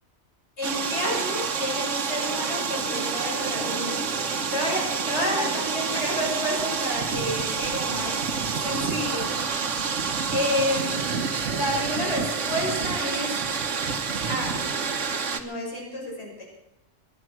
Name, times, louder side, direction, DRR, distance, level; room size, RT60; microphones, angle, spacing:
voice 1, 0.6-4.0 4.5-8.3 8.6-9.3 10.3-11.1 11.5-13.4 14.3-14.6 15.3-16.4, equal, 65° left, -4 dB, 6.8 m, -30 dB
sound 1, 0.6-15.4, right 5 dB, 85° right, 1.4 m, -28 dB
23.5 x 9.1 x 6.2 m, 0.85 s
omnidirectional pair, 1.2 m